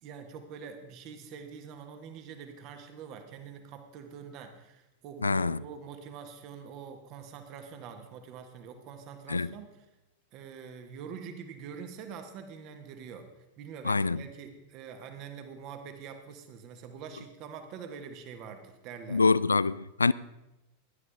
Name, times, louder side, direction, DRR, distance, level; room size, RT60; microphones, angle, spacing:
voice 1, 0.0-9.7 10.3-13.3 13.6-19.2, right 6 dB, 40° right, 1.6 m, -45 dB
voice 2, 5.2-5.6 9.3-9.5 13.8-14.2 19.1-20.1, left 4 dB, 80° left, 0.3 m, -25 dB
16.5 x 11.0 x 3.6 m
figure-of-eight pair, 90°, 0 cm